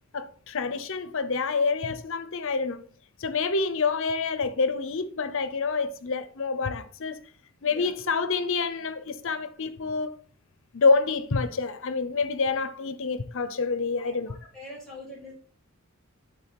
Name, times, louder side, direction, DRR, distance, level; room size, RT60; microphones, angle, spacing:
voice 1, 0.1-2.8 3.2-7.2 7.6-10.2 10.7-14.3, left 4 dB, 65° left, 0.7 m, -27 dB
voice 2, 7.6-7.9 14.0-15.3, left 1 dB, 5° left, 3.5 m, -44 dB
9.4 x 3.6 x 4.2 m
head